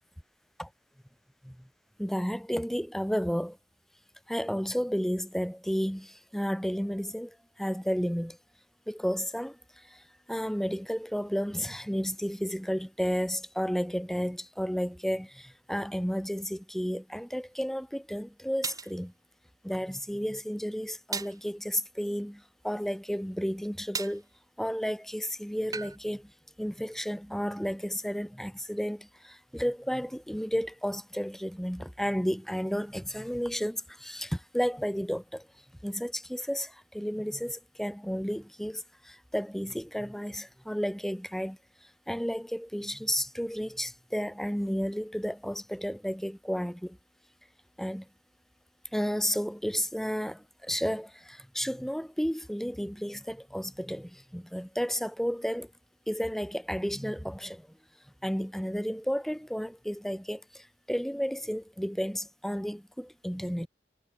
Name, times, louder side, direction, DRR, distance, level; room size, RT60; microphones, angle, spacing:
voice 1, 2.0-3.6 4.3-8.4 8.9-9.6 9.9-10.0 10.3-19.1 19.6-24.2 24.6-26.3 26.6-35.5 35.8-41.6 42.1-47.0 47.8-48.0 48.9-55.7 56.1-57.7 58.2-63.7, equal, ahead, 1.2 m, -32 dB
sound 1, 17.5-17.6 18.6-18.9 21.1-21.4 23.9-24.2 25.7-26.0, right 5 dB, 20° right, 3.9 m, -35 dB
head